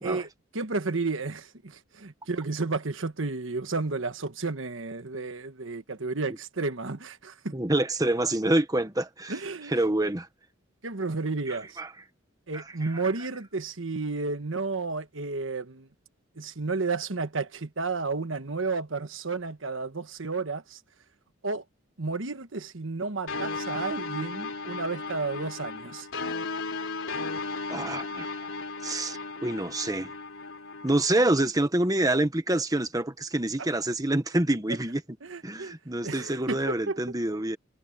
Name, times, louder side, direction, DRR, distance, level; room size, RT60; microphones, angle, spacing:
voice 1, 0.0-7.5 9.3-9.7 10.8-11.8 12.5-15.9 16.4-20.8 21.4-21.6 22.0-26.1 33.6-33.7 35.2-35.7 36.0-37.0, right 3 dB, 75° right, 1.3 m, -32 dB
voice 2, 7.5-9.4 9.7-10.3 11.5-11.9 12.5-13.0 27.7-28.3 28.8-30.1 30.8-35.0 35.4-37.6, right 1 dB, 20° right, 1.3 m, -27 dB
sound 1, 23.3-30.9, left 3 dB, 85° left, 3.4 m, -35 dB
head